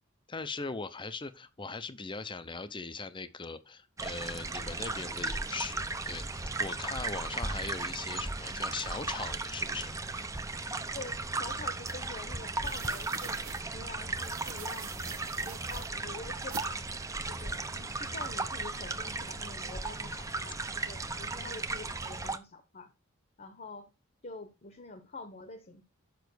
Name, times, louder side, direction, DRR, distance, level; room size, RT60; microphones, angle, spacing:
voice 1, 0.3-9.9, left 4 dB, 25° left, 0.7 m, -40 dB
sound 1, 4.0-22.4, right 3 dB, 15° right, 0.7 m, -36 dB
voice 2, 10.9-13.4 13.7-15.1 15.4-16.9 17.3-22.9 23.4-23.9 24.2-25.8, left 3 dB, 40° left, 1.1 m, -46 dB
sound 2, 11.8-11.9 12.6-13.6 14.2-15.9 16.5-16.7, right 9 dB, 80° right, 1.1 m, -46 dB
7.1 x 5.7 x 6.2 m
head